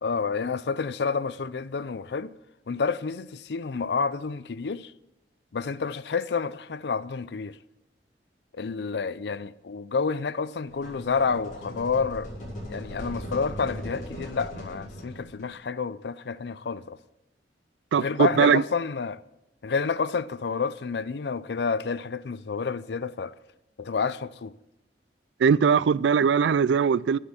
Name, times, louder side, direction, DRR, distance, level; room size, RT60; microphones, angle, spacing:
voice 1, 0.0-2.3 2.7-4.9 5.5-7.6 8.5-12.3 12.7-17.0 17.9-19.2 19.6-23.3 23.8-24.5, left 5 dB, 70° left, 0.5 m, -29 dB
sound 1, 10.6-15.5, equal, 45° left, 5.8 m, -39 dB
voice 2, 17.9-18.6 25.4-27.2, right 6 dB, 85° right, 0.3 m, -20 dB
11.5 x 9.9 x 6.9 m
head